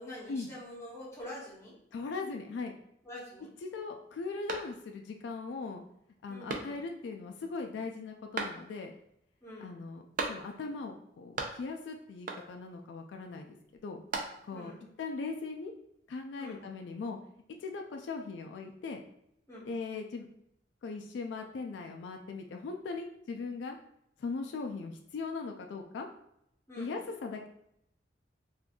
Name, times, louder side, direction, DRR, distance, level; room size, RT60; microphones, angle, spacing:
voice 1, 0.0-1.8 3.0-3.5 6.3-6.7 9.4-9.8 14.5-14.9 16.4-16.6 19.5-19.8 26.7-27.0, left 1 dB, 15° left, -7 dB, 1.0 m, -46 dB
voice 2, 1.9-2.7 3.6-5.8 6.2-8.9 9.6-13.6 13.8-14.0 14.5-14.7 15.0-15.7 16.1-17.2 17.6-19.0 19.7-20.3 20.8-23.8 24.2-26.1 26.8-27.5, left 4 dB, 75° left, 3 dB, 0.3 m, -39 dB
sound 1, 4.5-5.2 5.6-5.7 6.5-7.1 8.3-9.0 10.2-10.8 11.0-11.9 12.3-12.8 13.7-14.7, right 3 dB, 50° right, 0.4 m, -39 dB
2.5 x 2.3 x 3.6 m, 0.76 s
head